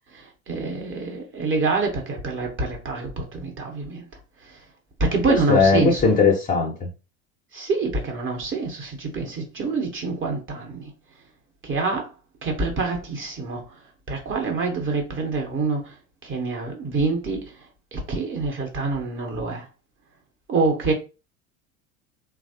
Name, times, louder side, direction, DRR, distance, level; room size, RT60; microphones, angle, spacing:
voice 1, 0.1-4.0 5.0-6.1 7.5-10.9 11.6-12.1 12.4-13.6 14.1-15.9 16.2-17.5 17.9-19.6 20.5-20.9, right 3 dB, 30° right, 0.9 m, -26 dB
voice 2, 5.3-6.9, left 4 dB, 20° left, 0.6 m, -19 dB
3.1 x 2.0 x 2.7 m
hypercardioid pair, 80°, 42 cm